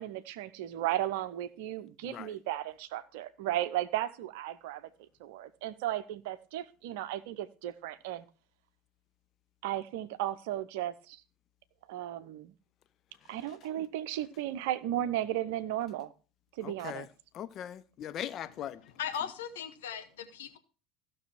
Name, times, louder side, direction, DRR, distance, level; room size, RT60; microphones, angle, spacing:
voice 1, 0.0-4.8 5.2-8.3 9.6-11.2 11.9-12.5 13.3-16.1 16.6-17.1, right 13 dB, 60° right, 0.7 m, -35 dB
voice 2, 16.6-17.1 17.3-18.8, left 10 dB, 40° left, 0.5 m, -40 dB
voice 3, 19.0-20.6, left 8 dB, 65° left, 1.1 m, -38 dB
15.0 x 6.2 x 4.4 m
figure-of-eight pair, 70°, 0 cm